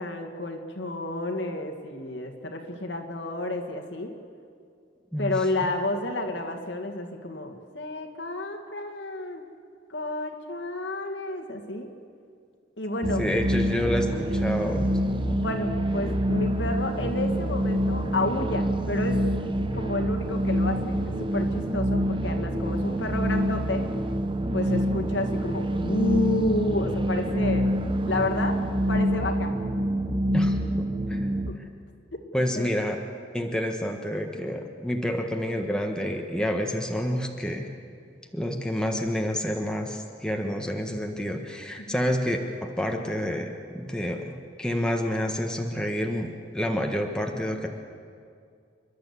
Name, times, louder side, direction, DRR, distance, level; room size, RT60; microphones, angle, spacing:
voice 1, 0.0-4.1 5.2-9.4 9.9-11.9 12.8-13.3 15.2-19.2 19.7-23.9 24.5-27.7 28.1-28.6 28.9-29.5 31.5-31.6 32.1-32.7 41.9-42.0, left 2 dB, 70° left, 3 dB, 2.1 m, -30 dB
sound 1, 13.0-31.5, equal, 25° right, 0.8 m, -26 dB
voice 2, 13.2-14.9 30.3-31.7 32.3-33.0 33.3-37.7 38.3-47.7, equal, 5° left, 2 dB, 1.3 m, -29 dB
28.5 x 12.0 x 8.4 m, 2.3 s
head